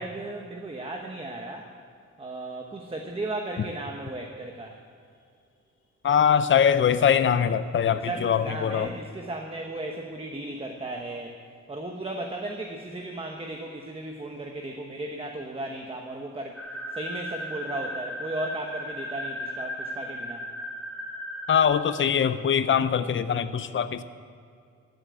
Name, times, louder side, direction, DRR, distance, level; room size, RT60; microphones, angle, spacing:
voice 1, 0.0-1.7 2.2-4.8 7.9-11.4 11.7-16.6 16.9-20.5, right 2 dB, 20° right, 2 dB, 1.0 m, -35 dB
voice 2, 6.0-8.9 21.5-24.0, left 8 dB, 40° left, 12 dB, 0.5 m, -22 dB
sound 1, 16.6-21.6, equal, ahead, 1.7 m, -36 dB
13.5 x 7.7 x 8.2 m, 2.3 s
wide cardioid pair, 125°, 30 cm